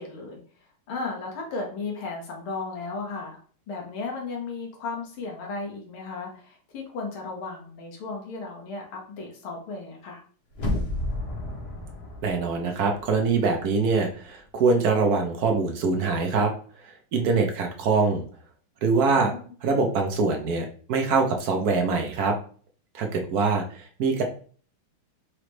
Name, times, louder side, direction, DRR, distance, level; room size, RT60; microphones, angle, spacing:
voice 1, 0.0-3.4 3.7-10.2 19.1-19.8, left 3 dB, 75° left, 0 dB, 2.1 m, -35 dB
sound 1, 10.5-13.5 13.8-13.9, left 1 dB, 45° left, 0.8 m, -32 dB
voice 2, 12.2-16.5 16.8-18.2 18.8-19.3 19.6-22.3 22.9-24.2, right 4 dB, 65° right, 3 dB, 1.0 m, -24 dB
4.9 x 3.2 x 3.1 m, 0.44 s
omnidirectional pair, 2.3 m